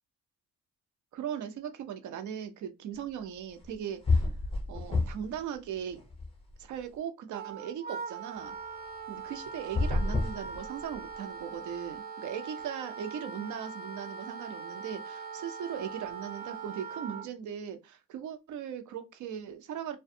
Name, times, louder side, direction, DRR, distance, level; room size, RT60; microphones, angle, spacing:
voice 1, 1.1-4.3 4.7-6.0 6.6-8.6 9.1-20.0, right 8 dB, 75° right, 0.6 m, -39 dB
sound 1, 3.6-3.7 4.0-5.4 5.7-6.8 9.6-11.1, left 3 dB, 20° left, 0.7 m, -29 dB
Wind instrument woodwind instrument, 7.3-17.3, right 5 dB, 35° right, 0.6 m, -42 dB
2.4 x 2.2 x 2.6 m
cardioid pair, 90°, 30 cm